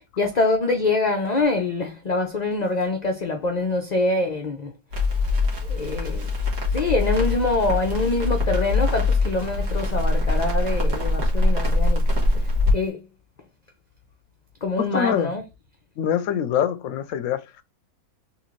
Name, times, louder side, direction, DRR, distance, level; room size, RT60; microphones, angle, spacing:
voice 1, 0.2-4.7 5.7-12.2 12.7-13.0 14.6-15.4, left 2 dB, 50° left, 0.5 m, -25 dB
Crackle, 4.9-12.7, left 2 dB, 60° right, 1.7 m, -23 dB
voice 2, 14.8-15.3 16.0-17.6, left 9 dB, 70° left, 0.9 m, -24 dB
3.8 x 3.1 x 3.1 m
omnidirectional pair, 1.5 m